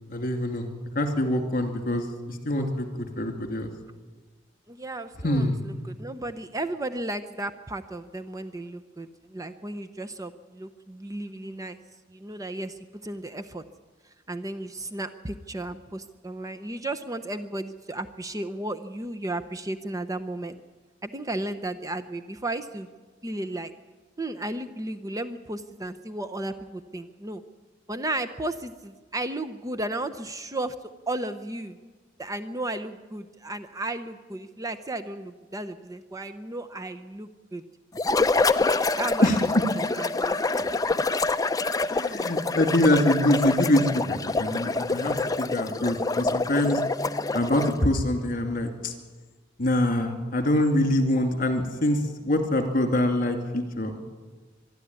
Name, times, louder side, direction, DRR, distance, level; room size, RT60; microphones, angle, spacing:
voice 1, 0.1-0.7 0.9-3.7 5.2-5.6 39.2-39.4 41.9-46.8 47.3-48.9 49.6-54.0, left 1 dB, 50° left, 5 dB, 2.8 m, -24 dB
voice 2, 4.7-11.8 12.1-13.6 14.3-20.6 21.0-22.9 23.2-23.7 24.2-27.4 27.9-30.7 31.1-31.8 32.2-37.6 39.0-39.3 39.8-40.7, right 2 dB, 20° right, 10 dB, 0.7 m, -34 dB
sound 1, 38.0-47.8, left 3 dB, 20° left, 0.6 m, -26 dB
24.5 x 11.5 x 9.6 m, 1.3 s
head